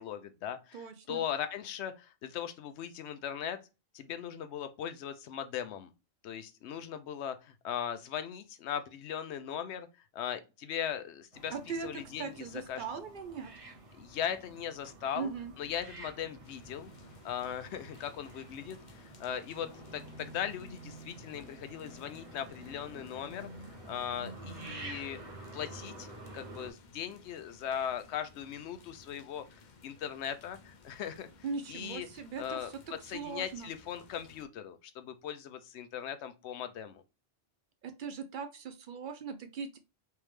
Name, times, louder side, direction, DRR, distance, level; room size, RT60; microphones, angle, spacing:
voice 1, 0.0-3.6 3.9-5.9 6.2-9.9 10.1-11.5 11.8-12.3 12.7-12.8 13.9-15.3 15.6-16.9 17.2-23.5 23.9-25.2 25.5-26.1 26.3-31.3 31.7-32.1 32.4-32.7 33.0-37.0, left 9 dB, 85° left, 0.9 m, -39 dB
voice 2, 0.7-1.2 11.5-11.9 12.2-13.5 15.1-15.5 31.4-33.7 37.8-39.8, right 5 dB, 60° right, 0.6 m, -40 dB
sound 1, 11.3-26.7, right 2 dB, 35° right, 0.9 m, -49 dB
sound 2, 16.4-34.5, left 4 dB, 50° left, 0.7 m, -58 dB
3.5 x 3.2 x 3.2 m
omnidirectional pair, 1.1 m